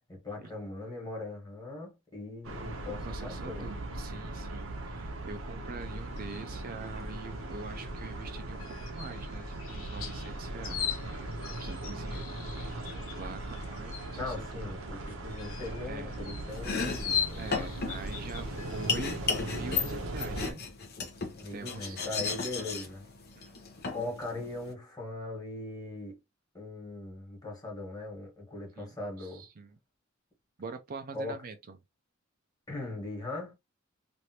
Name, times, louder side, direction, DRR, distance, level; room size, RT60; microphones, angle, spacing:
voice 1, 0.1-3.7 14.1-17.5 21.4-23.0 23.9-26.2 26.5-29.4 31.1-31.4 32.7-33.5, left 2 dB, 20° left, 1.5 m, -40 dB
sound 1, 2.4-20.5, right 1 dB, 85° right, 0.8 m, -39 dB
voice 2, 3.0-12.3 12.6-14.7 15.8-16.1 17.4-19.2 19.5-20.6 21.5-22.0 23.4-23.6 28.8-29.8 30.6-31.8, right 4 dB, 45° right, 0.4 m, -44 dB
sound 2, 5.8-18.9, left 8 dB, 85° left, 0.8 m, -41 dB
Domestic sounds home sounds, 16.5-24.7, left 5 dB, 50° left, 0.7 m, -35 dB
3.2 x 2.5 x 2.8 m
head